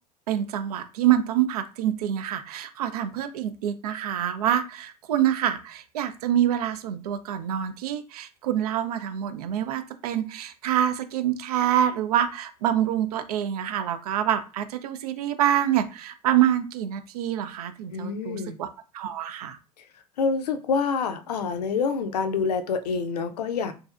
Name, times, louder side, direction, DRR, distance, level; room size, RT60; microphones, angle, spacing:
voice 1, 0.3-19.6, right 11 dB, 70° right, 0.4 m, -26 dB
voice 2, 17.9-18.6 19.8-19.9 20.2-23.7, left 5 dB, 75° left, 0.5 m, -27 dB
3.0 x 2.6 x 2.4 m
figure-of-eight pair, 75°, 20 cm